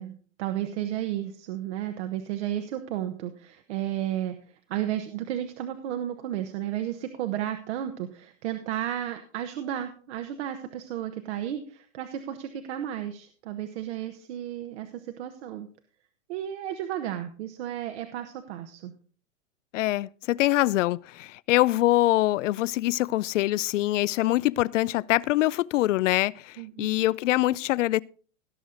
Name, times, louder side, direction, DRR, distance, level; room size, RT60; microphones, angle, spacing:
voice 1, 0.0-15.7 16.3-18.9 26.6-26.9, right 11 dB, 60° right, 1.1 m, -33 dB
voice 2, 19.7-28.0, left 16 dB, 70° left, 0.5 m, -24 dB
17.5 x 6.3 x 3.9 m
hypercardioid pair, 135°, 38 cm